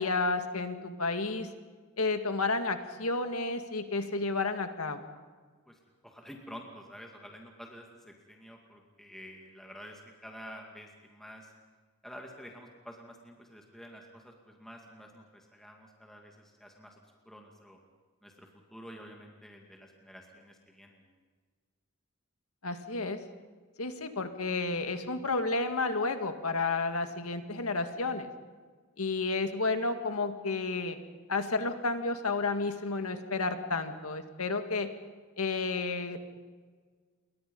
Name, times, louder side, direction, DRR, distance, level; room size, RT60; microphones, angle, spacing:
voice 1, 0.0-1.5 2.0-5.1 22.6-23.2 23.8-28.3 29.0-31.0 31.3-34.9 35.4-36.2, left 3 dB, 85° left, 7 dB, 2.1 m, -31 dB
voice 2, 5.7-11.5 12.0-17.0 17.3-17.8 18.2-21.1, equal, ahead, 1 dB, 2.3 m, -49 dB
28.5 x 23.0 x 5.5 m, 1.5 s
head